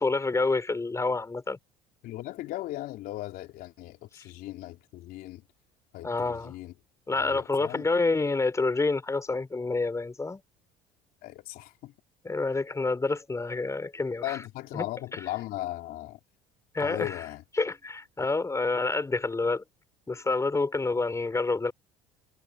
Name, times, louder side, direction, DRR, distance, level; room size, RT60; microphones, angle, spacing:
voice 1, 0.0-1.6 6.0-6.5 7.1-10.4 12.2-14.4 14.7-14.9 15.1-15.2 16.7-17.2 17.6-19.6 20.1-21.7, left 3 dB, 20° left, 5.3 m, -28 dB
voice 2, 2.0-5.4 5.9-6.7 7.2-7.9 11.2-11.9 14.2-16.2 16.8-17.4, left 15 dB, 65° left, 3.5 m, -37 dB
supercardioid pair, 85°, 16 cm